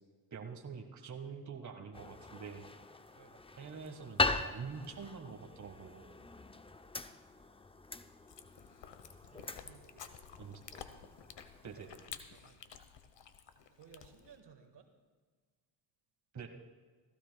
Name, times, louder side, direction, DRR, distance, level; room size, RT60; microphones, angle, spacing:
voice 1, 0.3-2.6 3.6-6.0 10.4-10.6 11.6-11.9 16.3-16.5, right 5 dB, 35° right, 3 dB, 1.6 m, -46 dB
sound 1, 1.9-12.1, left 3 dB, 10° left, 0.6 m, -41 dB
voice 2, 3.1-3.7 9.2-10.4 11.9-12.8 13.7-14.9, right 6 dB, 55° right, 5 dB, 1.8 m, -60 dB
Chewing mastication, 8.3-14.4, left 8 dB, 60° left, 1.2 m, -52 dB
17.5 x 15.5 x 2.3 m, 1.5 s
supercardioid pair, 70°, 48 cm